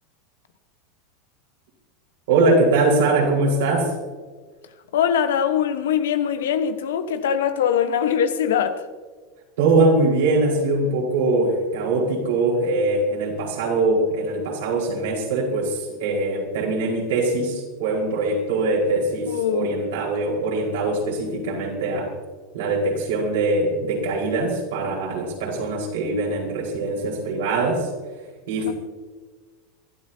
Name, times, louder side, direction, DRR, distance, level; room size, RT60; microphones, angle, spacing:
voice 1, 2.3-3.9 9.6-22.1 22.5-27.9 28.5-28.7, right 2 dB, 70° right, 4.8 m, -22 dB
voice 2, 4.9-8.8 19.3-19.7 28.7-28.8, left 8 dB, 75° left, 1.2 m, -22 dB
24.5 x 12.5 x 2.9 m
hypercardioid pair, 90°, 0 cm